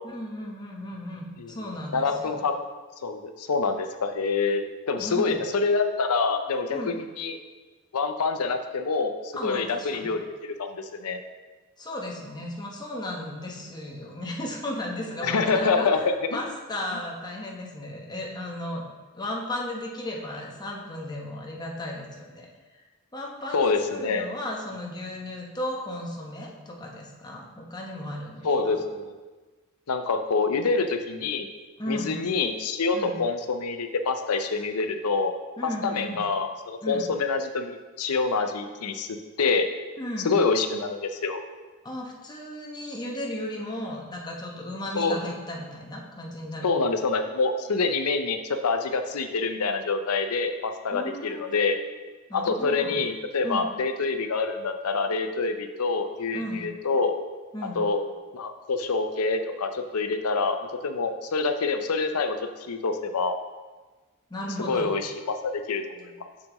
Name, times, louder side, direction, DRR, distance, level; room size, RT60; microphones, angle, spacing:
voice 1, 0.0-2.4 5.0-5.2 6.7-7.0 9.3-10.1 11.8-16.0 16.3-18.8 19.1-22.5 23.1-28.9 31.8-32.3 32.9-33.2 35.6-36.3 36.8-37.1 40.0-40.4 41.8-46.7 50.9-51.7 52.3-53.0 53.4-53.7 56.3-56.7 57.5-57.8 64.3-64.9, left 1 dB, 20° left, -2 dB, 0.9 m, -35 dB
voice 2, 1.9-2.5 3.0-7.4 7.9-11.2 15.2-16.4 23.5-24.3 28.4-29.1 29.9-31.5 31.9-35.3 35.6-39.7 40.2-41.4 44.9-45.2 46.6-51.8 52.3-57.2 57.8-58.0 58.3-60.6 60.8-62.4 62.7-63.3 64.7-66.1, left 4 dB, 85° left, 7 dB, 0.6 m, -26 dB
7.0 x 6.6 x 3.0 m, 1.3 s
head